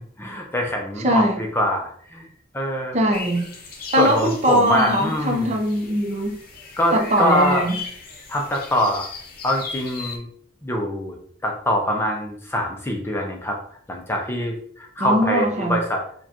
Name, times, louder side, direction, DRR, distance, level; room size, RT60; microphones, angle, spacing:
voice 1, 0.2-2.3 2.5-3.0 4.0-5.5 6.8-7.7 8.3-9.1 9.4-10.3 10.6-11.1 11.4-13.6 13.9-16.0, equal, 10° left, 1 dB, 0.4 m, -24 dB
voice 2, 1.0-1.4 2.9-3.5 3.9-6.4 6.9-7.7 15.0-15.8, equal, 35° right, 3 dB, 0.6 m, -20 dB
sound 1, 3.1-10.2, left 4 dB, 50° left, 0.7 m, -37 dB
4.7 x 2.2 x 2.8 m, 0.62 s
head